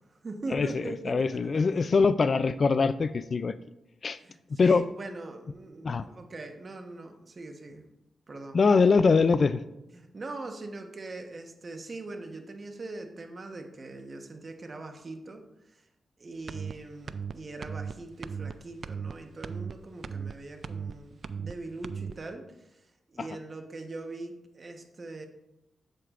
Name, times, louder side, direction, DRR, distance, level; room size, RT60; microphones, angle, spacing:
voice 1, 0.0-1.8 4.2-7.8 8.3-8.6 9.9-15.9 16.2-25.3, right 2 dB, 40° right, 4 dB, 1.1 m, -41 dB
voice 2, 0.5-3.6 4.0-4.2 4.6-4.8 5.8-6.0 8.5-9.6 23.2-23.3, left 4 dB, 50° left, 14 dB, 0.3 m, -23 dB
sound 1, 16.5-16.7 17.1-17.3 17.6-17.9 18.2-18.5 18.8-19.1 19.4-19.7 20.0-20.3 20.6-20.9 21.2-21.5 21.8-22.1, right 6 dB, 60° right, 0.3 m, -36 dB
8.2 x 7.7 x 2.5 m, 0.89 s
cardioid pair, 85°, 0 cm